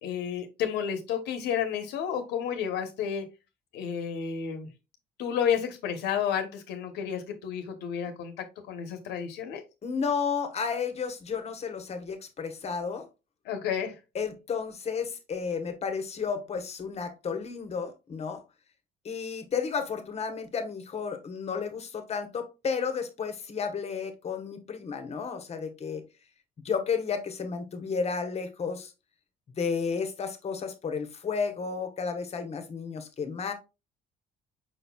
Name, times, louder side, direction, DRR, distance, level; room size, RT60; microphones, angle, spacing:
voice 1, 0.0-3.2 3.7-4.7 5.2-8.3 8.7-9.6 13.4-13.9, left 8 dB, 85° left, 0.9 m, -31 dB
voice 2, 9.8-13.1 14.1-18.4 19.0-26.0 26.6-28.9 29.6-33.5, left 5 dB, 40° left, 1.0 m, -32 dB
5.3 x 4.1 x 2.3 m
cardioid pair, 110°, 17 cm